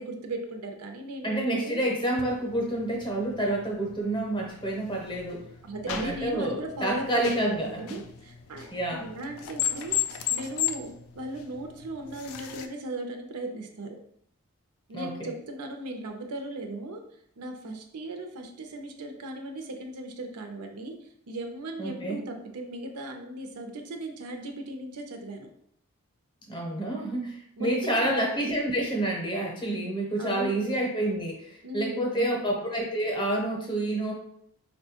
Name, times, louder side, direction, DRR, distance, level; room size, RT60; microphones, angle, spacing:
voice 1, 0.0-1.8 5.6-7.3 7.6-14.0 14.9-17.0 17.4-25.5 27.6-28.1 28.5-28.6 30.2-30.7 31.6-32.5, right 2 dB, 85° right, 4 dB, 0.5 m, -37 dB
voice 2, 1.2-5.4 5.9-8.0 8.7-9.1 14.9-15.1 21.8-22.2 26.5-34.1, right 1 dB, 20° left, -1 dB, 0.7 m, -28 dB
sound 1, 2.1-12.7, left 10 dB, 65° left, 0.3 m, -36 dB
4.2 x 2.2 x 2.8 m, 0.70 s
head